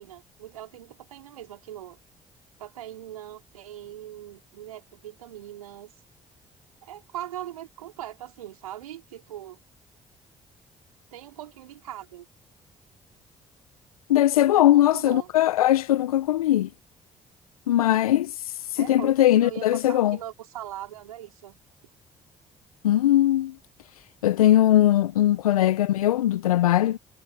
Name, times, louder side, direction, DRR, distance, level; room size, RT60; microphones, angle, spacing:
voice 1, 0.0-2.0 2.6-5.9 6.8-9.6 11.1-12.3 14.5-15.3 18.8-19.1 19.4-21.6, right 12 dB, 85° right, 4.0 m, -40 dB
voice 2, 14.1-16.7 17.7-20.2 22.8-23.5 24.2-27.0, left 13 dB, 85° left, 1.2 m, -20 dB
figure-of-eight pair, 45°, 18 cm